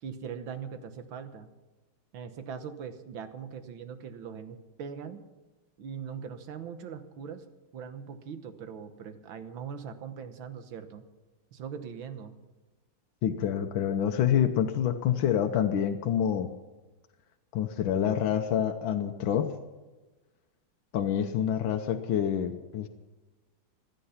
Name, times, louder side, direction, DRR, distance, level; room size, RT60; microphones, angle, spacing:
voice 1, 0.0-1.5 2.1-5.2 5.8-7.4 7.7-11.0 11.5-12.3, right 7 dB, 85° right, 10 dB, 1.9 m, -41 dB
voice 2, 13.2-16.5 17.5-19.5 20.9-22.9, left 9 dB, 85° left, 5 dB, 1.6 m, -27 dB
16.0 x 12.5 x 5.7 m, 1.2 s
omnidirectional pair, 2.1 m